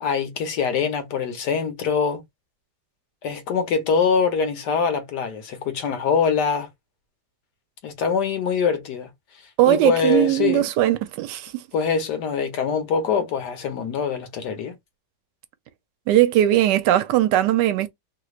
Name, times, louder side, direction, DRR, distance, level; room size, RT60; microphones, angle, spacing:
voice 1, 0.0-2.2 3.2-6.7 7.8-9.1 9.7-10.7 11.7-14.7, left 6 dB, 75° left, 1.4 m, -23 dB
voice 2, 9.6-11.6 16.1-17.9, right 13 dB, 80° right, 1.2 m, -19 dB
3.3 x 3.0 x 2.3 m
omnidirectional pair, 1.9 m